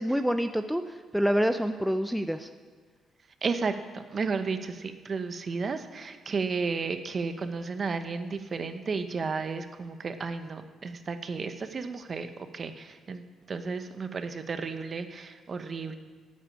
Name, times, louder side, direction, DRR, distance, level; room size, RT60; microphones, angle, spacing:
voice 1, 0.0-2.5, equal, 5° right, 8 dB, 0.6 m, -27 dB
voice 2, 3.4-16.0, right 4 dB, 45° right, 8 dB, 1.0 m, -33 dB
10.0 x 8.1 x 8.9 m, 1.5 s
cardioid pair, 90°, 0 cm